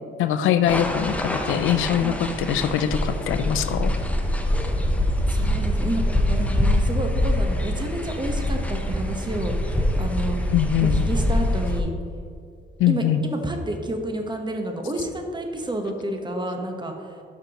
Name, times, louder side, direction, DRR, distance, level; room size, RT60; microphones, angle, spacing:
voice 1, 0.2-3.9 10.5-11.0 12.8-13.3, left 9 dB, 85° left, 10 dB, 0.5 m, -22 dB
sound 1, 0.7-11.8, left 1 dB, 5° left, 0.8 m, -24 dB
voice 2, 5.3-10.5 10.8-11.9 12.9-17.2, right 1 dB, 20° right, 4 dB, 1.1 m, -30 dB
12.0 x 5.8 x 3.0 m, 2.3 s
cardioid pair, 90°, 20 cm